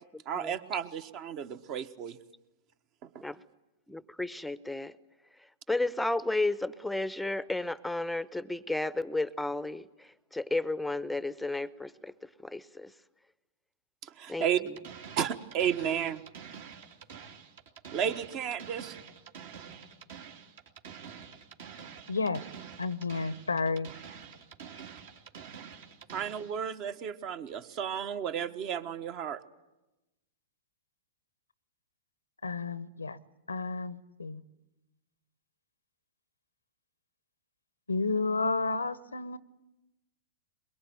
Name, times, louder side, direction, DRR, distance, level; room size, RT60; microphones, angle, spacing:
voice 1, 0.2-2.2 3.0-3.2 14.0-14.6 15.2-16.2 17.9-18.9 26.1-29.4, right 8 dB, 40° right, 1.3 m, -33 dB
voice 2, 3.9-5.0 5.4-12.9 14.3-14.8, left 2 dB, 5° left, 0.8 m, -33 dB
sound 1, 14.6-26.6, right 7 dB, 60° right, 2.8 m, -47 dB
voice 3, 22.1-22.4 22.8-23.9 32.4-33.2 33.5-34.4 37.9-39.4, left 3 dB, 85° left, 0.8 m, -31 dB
23.0 x 22.0 x 9.3 m
figure-of-eight pair, 105°, 0 cm